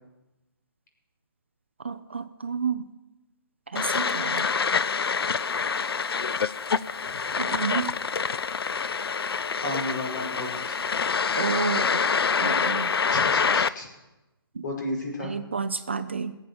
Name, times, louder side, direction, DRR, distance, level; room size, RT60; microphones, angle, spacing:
voice 1, 1.8-2.9 3.7-4.4 7.4-7.9 11.4-12.0 12.4-12.9 14.6-14.7 15.2-16.4, right 5 dB, 30° right, 11 dB, 0.4 m, -30 dB
sound 1, 3.8-13.7, left 5 dB, 75° left, 0.6 m, -26 dB
voice 2, 9.6-10.8 13.1-13.9 14.6-15.3, left 1 dB, 50° left, 0 dB, 5.4 m, -33 dB
21.0 x 7.7 x 7.0 m, 1.0 s
hypercardioid pair, 175°, 13 cm